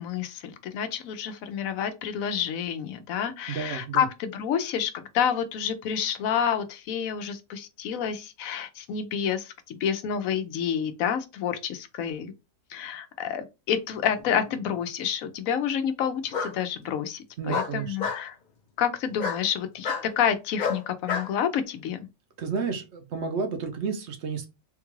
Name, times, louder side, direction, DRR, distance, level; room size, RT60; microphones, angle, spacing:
voice 1, 0.0-12.3 12.7-18.4 18.8-22.1, left 8 dB, 80° left, 1.0 m, -29 dB
voice 2, 3.5-4.0 17.4-18.0 22.4-24.5, right 5 dB, 60° right, 0.9 m, -31 dB
Bark, 14.2-14.8 16.3-16.5 17.5-18.2 19.2-19.4 19.8-20.1 20.6-21.3, left 5 dB, 45° left, 0.6 m, -29 dB
3.6 x 2.3 x 3.0 m
omnidirectional pair, 1.4 m